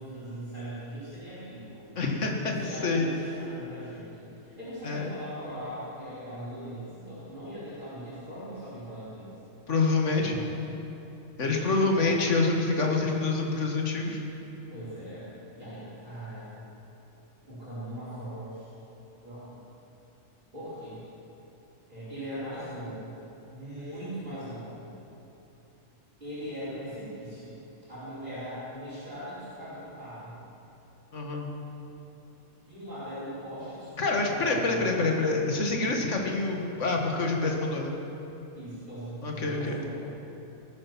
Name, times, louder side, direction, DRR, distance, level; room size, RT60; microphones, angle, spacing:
voice 1, 0.0-1.8 2.4-9.3 10.2-10.5 11.4-12.2 14.7-16.5 17.5-18.8 19.2-19.5 20.5-21.0 21.9-23.2 23.5-24.9 26.2-27.5 27.9-30.4 32.6-35.0 38.5-40.0, equal, 35° right, -14 dB, 4.7 m, -40 dB
voice 2, 2.0-2.5 2.8-3.1 4.8-5.1 9.7-10.4 11.4-14.2 31.1-31.5 34.0-37.9 39.2-39.8, left 3 dB, 60° left, 1 dB, 2.0 m, -26 dB
19.5 x 9.5 x 6.1 m, 3.0 s
omnidirectional pair, 1.4 m